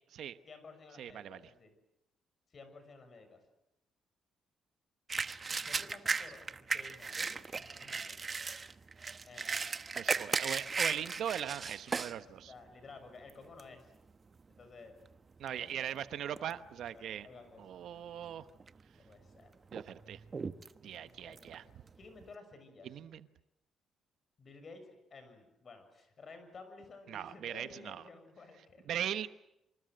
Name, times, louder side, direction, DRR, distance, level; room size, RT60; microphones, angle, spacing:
voice 1, 0.4-1.7 2.5-3.4 5.6-8.2 9.2-9.7 10.0-10.4 12.5-13.9 14.5-15.0 15.4-15.9 16.9-17.6 19.0-19.5 20.8-21.4 21.9-23.0 24.4-29.2, left 3 dB, 40° left, 8 dB, 6.9 m, -54 dB
voice 2, 1.0-1.4 9.9-12.5 15.4-17.3 17.6-18.4 19.7-20.2 20.8-21.6 22.8-23.3 27.1-28.0 28.9-29.3, right 10 dB, 70° right, 12 dB, 1.1 m, -40 dB
sound 1, 5.1-12.2 12.7-12.8 13.3-13.7 14.4-14.6 14.9-16.0 16.4-16.9 17.3-17.4 18.2-18.8 19.2-22.3, right 4 dB, 30° right, 1.1 m, -37 dB
27.0 x 26.0 x 7.8 m, 0.88 s
cardioid pair, 110°, 0 cm